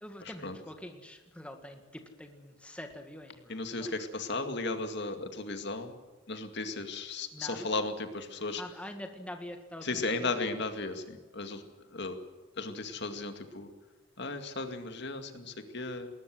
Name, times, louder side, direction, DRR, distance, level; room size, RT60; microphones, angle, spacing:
voice 1, 0.0-3.9 7.3-7.7 8.4-10.3, left 1 dB, 5° left, 5 dB, 1.8 m, -45 dB
voice 2, 3.5-5.9 6.3-8.6 9.8-11.6 11.9-12.2 12.6-13.7 14.2-16.1, left 3 dB, 55° left, 7 dB, 2.2 m, -35 dB
20.5 x 20.5 x 7.8 m, 1.3 s
head